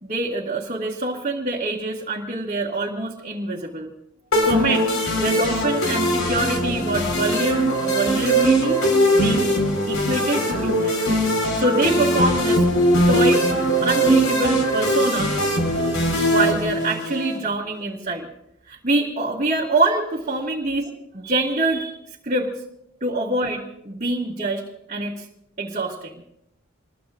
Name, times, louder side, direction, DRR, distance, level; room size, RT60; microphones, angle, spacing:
voice 1, 0.0-3.9 4.4-4.9 5.2-8.8 9.1-9.5 9.9-10.9 11.5-12.6 13.1-13.4 13.8-15.3 16.3-18.3 18.7-22.0 22.2-22.5 23.0-24.6 24.9-25.2 25.6-26.2, right 2 dB, 35° right, -5 dB, 2.1 m, -25 dB
sound 1, 4.3-17.4, equal, 80° left, 4.7 m, -20 dB
26.5 x 21.5 x 2.6 m, 0.78 s
head